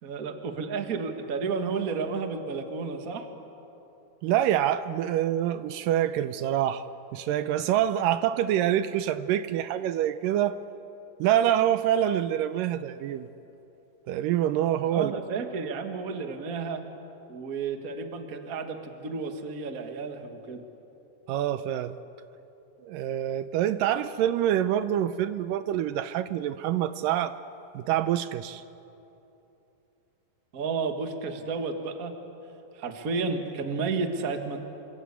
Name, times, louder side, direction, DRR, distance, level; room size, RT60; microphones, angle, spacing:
voice 1, 0.0-3.2 14.9-16.8 17.3-20.6 30.5-32.1 32.7-34.6, right 4 dB, 40° right, 6 dB, 1.4 m, -32 dB
voice 2, 4.2-6.9 7.1-10.6 11.2-13.3 14.1-15.2 21.3-21.9 22.8-27.4 27.7-28.6, right 11 dB, 80° right, 12 dB, 2.3 m, -26 dB
27.5 x 25.0 x 8.3 m, 2.9 s
omnidirectional pair, 4.0 m